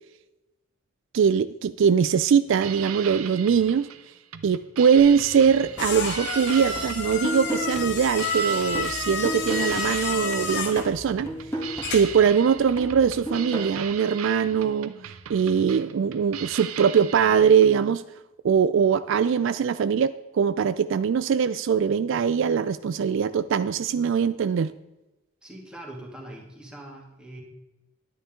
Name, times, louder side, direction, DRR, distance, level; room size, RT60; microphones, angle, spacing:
voice 1, 1.1-3.9 4.4-11.3 11.9-14.9 15.3-18.0 18.4-24.7, right 7 dB, 60° right, 13 dB, 0.3 m, -22 dB
sound 1, 2.5-17.8, right 9 dB, 90° right, 0.7 m, -39 dB
sound 2, 5.0-12.3, left 4 dB, 55° left, 1.3 m, -31 dB
sound 3, 5.8-10.2 10.5-13.8, equal, 10° left, 1.7 m, -35 dB
voice 2, 25.4-27.4, right 1 dB, 5° right, -1 dB, 2.1 m, -42 dB
11.0 x 10.0 x 3.7 m, 1.0 s
head